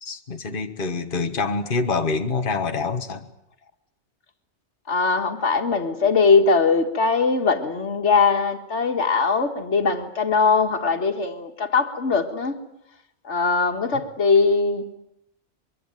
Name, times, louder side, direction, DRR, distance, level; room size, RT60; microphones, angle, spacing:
voice 1, 0.0-3.3, left 4 dB, 50° left, 1.7 m, -26 dB
voice 2, 4.9-12.5 13.2-14.8, left 4 dB, 90° left, 2.2 m, -21 dB
24.0 x 23.0 x 9.2 m
omnidirectional pair, 1.2 m